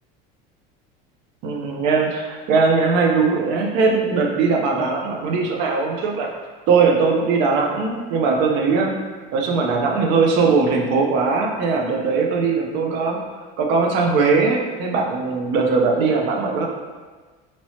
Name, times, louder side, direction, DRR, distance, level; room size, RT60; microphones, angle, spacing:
voice 1, 1.4-6.3 6.7-9.0 9.3-13.2 13.6-16.7, right 4 dB, 70° right, 1 dB, 0.6 m, -20 dB
3.0 x 2.9 x 2.8 m, 1.4 s
cardioid pair, 135°, 19 cm